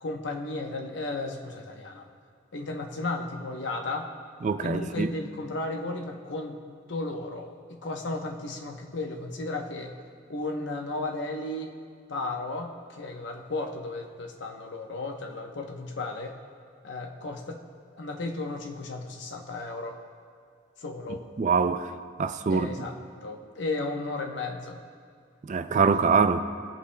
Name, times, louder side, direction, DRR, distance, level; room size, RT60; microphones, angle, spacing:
voice 1, 0.0-2.1 2.5-4.1 4.6-6.6 6.9-9.9 10.3-11.7 12.1-16.4 16.8-17.6 18.0-20.0 20.8-21.3 22.5-22.9 23.2-24.8, left 2 dB, 60° left, 3 dB, 0.9 m, -34 dB
voice 2, 4.4-5.1 21.4-21.9 22.2-22.7 25.5-26.4, right 5 dB, 40° right, 11 dB, 0.3 m, -24 dB
19.5 x 8.4 x 2.2 m, 2.2 s
head